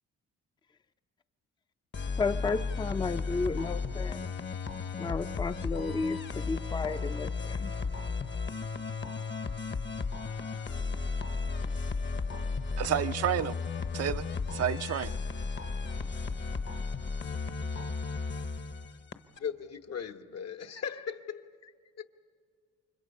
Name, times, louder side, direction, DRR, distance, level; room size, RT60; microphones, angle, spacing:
sound 1, 1.9-19.4, left 4 dB, 40° left, 1.0 m, -34 dB
voice 1, 2.2-4.3 5.0-7.7, left 4 dB, 15° left, 0.5 m, -33 dB
voice 2, 12.8-13.6 13.9-15.2, right 10 dB, 55° right, 0.5 m, -30 dB
voice 3, 19.4-21.7 22.0-22.1, left 7 dB, 55° left, 1.1 m, -38 dB
29.5 x 24.5 x 5.4 m
cardioid pair, 90°, 30 cm